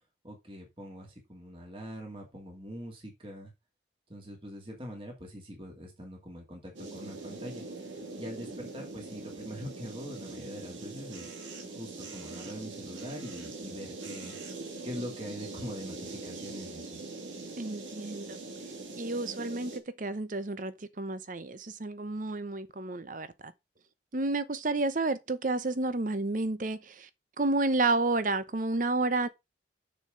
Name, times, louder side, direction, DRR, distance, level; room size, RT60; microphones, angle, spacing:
voice 1, 0.2-3.5 4.1-7.6 8.2-11.4 11.7-14.4 14.8-17.0, equal, 30° right, 2.5 m, -43 dB
sound 1, 6.7-19.8, right 3 dB, 90° right, 2.6 m, -42 dB
voice 2, 17.6-18.4 19.0-23.5 24.1-27.1 27.4-29.3, right 2 dB, 45° right, 0.8 m, -30 dB
6.7 x 6.7 x 5.1 m
head